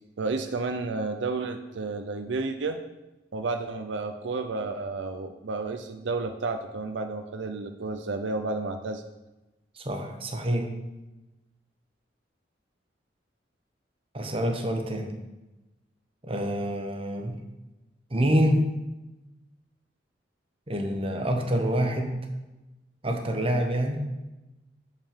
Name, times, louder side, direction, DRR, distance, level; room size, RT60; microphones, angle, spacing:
voice 1, 0.2-2.8 3.3-9.0, right 3 dB, 75° right, 7 dB, 0.5 m, -31 dB
voice 2, 9.7-10.7 14.1-15.1 16.2-17.4 18.1-18.6 20.7-22.2 23.0-24.0, equal, 30° right, 4 dB, 1.1 m, -26 dB
6.7 x 5.7 x 7.3 m, 1.0 s
head